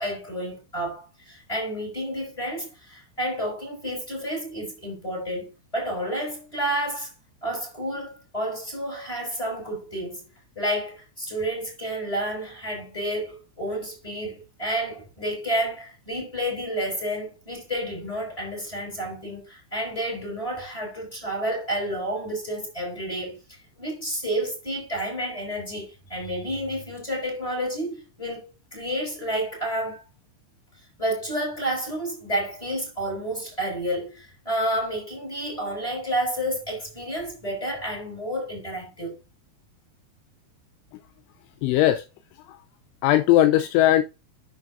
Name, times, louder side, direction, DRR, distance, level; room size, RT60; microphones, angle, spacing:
voice 1, 0.0-7.1 7.4-10.2 10.6-23.4 23.8-30.0 31.0-39.1, right 1 dB, 5° left, 5.2 m, -30 dB
voice 2, 41.6-42.0 43.0-44.0, left 13 dB, 80° left, 2.9 m, -18 dB
10.5 x 6.7 x 2.6 m
omnidirectional pair, 5.7 m